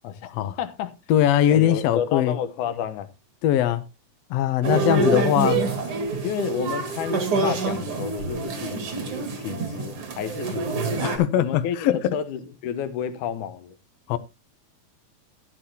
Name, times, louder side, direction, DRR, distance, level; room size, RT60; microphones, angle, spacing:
voice 1, 0.6-0.9 1.5-3.1 4.8-5.1 6.2-13.7, left 9 dB, 90° left, 2.5 m, -31 dB
voice 2, 1.1-2.4 3.4-3.8 4.3-5.6 11.0-12.2 14.1-14.2, left 11 dB, 70° left, 1.8 m, -21 dB
sound 1, 4.6-11.2, right 3 dB, 50° right, 2.5 m, -26 dB
13.5 x 10.0 x 2.8 m
omnidirectional pair, 3.4 m